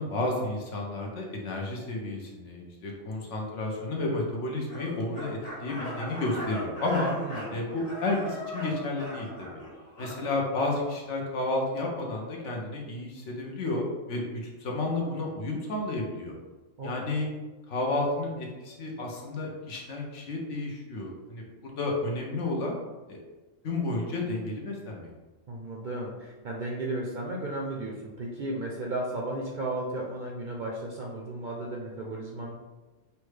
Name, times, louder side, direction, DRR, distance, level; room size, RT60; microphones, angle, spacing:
voice 1, 0.0-7.1 7.5-9.6 10.0-16.3 16.8-17.3 17.7-22.8 23.1-23.2 23.6-25.1, left 2 dB, 70° left, 0 dB, 1.1 m, -31 dB
sound 1, 4.7-10.7, left 1 dB, 90° left, 1.6 m, -39 dB
voice 2, 7.2-7.6 16.8-17.1 25.5-32.5, right 2 dB, 55° right, -2 dB, 0.6 m, -34 dB
5.7 x 2.2 x 3.2 m, 1.2 s
omnidirectional pair, 1.3 m